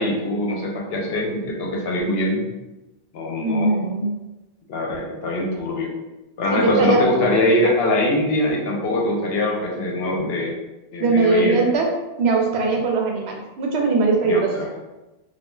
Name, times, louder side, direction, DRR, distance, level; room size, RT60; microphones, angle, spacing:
voice 1, 0.0-2.5 3.1-3.7 4.7-5.9 6.4-10.6 10.9-11.6 14.2-14.7, left 1 dB, 75° left, -1 dB, 0.8 m, -23 dB
voice 2, 3.4-4.1 6.5-7.0 11.0-14.5, right 3 dB, 85° right, 0 dB, 0.9 m, -20 dB
2.3 x 2.2 x 3.0 m, 1.0 s
omnidirectional pair, 1.1 m